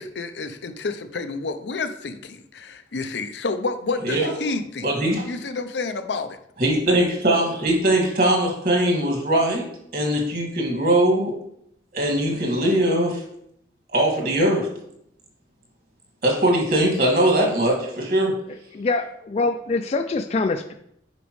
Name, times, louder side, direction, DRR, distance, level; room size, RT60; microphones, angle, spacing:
voice 1, 0.0-4.9 5.2-6.4, left 3 dB, 80° left, 9 dB, 0.6 m, -29 dB
voice 2, 4.8-5.3 6.6-9.6 9.9-11.3 11.9-13.2 13.9-14.7 16.2-18.4, right 1 dB, 55° right, 0 dB, 2.0 m, -21 dB
voice 3, 18.7-20.7, left 3 dB, 35° left, 7 dB, 0.3 m, -24 dB
8.3 x 5.3 x 3.1 m, 0.73 s
head